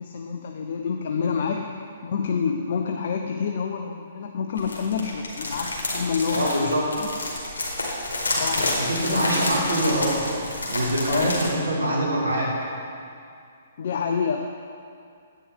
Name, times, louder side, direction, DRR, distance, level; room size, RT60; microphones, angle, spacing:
voice 1, 0.0-1.7 2.0-7.1 8.4-9.7 11.1-11.4 13.8-14.5, left 6 dB, 55° left, 3 dB, 0.5 m, -28 dB
sound 1, 4.6-11.5, left 2 dB, 75° left, 2.1 m, -29 dB
voice 2, 6.3-6.9 8.8-10.3 10.7-12.5, right 1 dB, 80° right, -3 dB, 2.1 m, -24 dB
9.6 x 8.7 x 3.5 m, 2.4 s
figure-of-eight pair, 125°, 0 cm